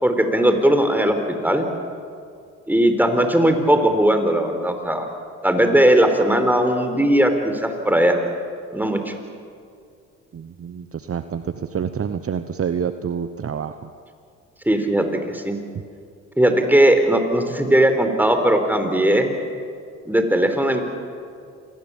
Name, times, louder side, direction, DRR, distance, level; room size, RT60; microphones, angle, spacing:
voice 1, 0.0-1.7 2.7-5.1 5.4-8.2 8.7-9.1 14.7-15.6 16.4-19.3 20.1-20.8, right 1 dB, 5° right, 6 dB, 4.2 m, -18 dB
voice 2, 10.3-13.9, right 7 dB, 40° right, 10 dB, 1.1 m, -27 dB
27.5 x 20.0 x 7.3 m, 2.4 s
hypercardioid pair, 60°, 35 cm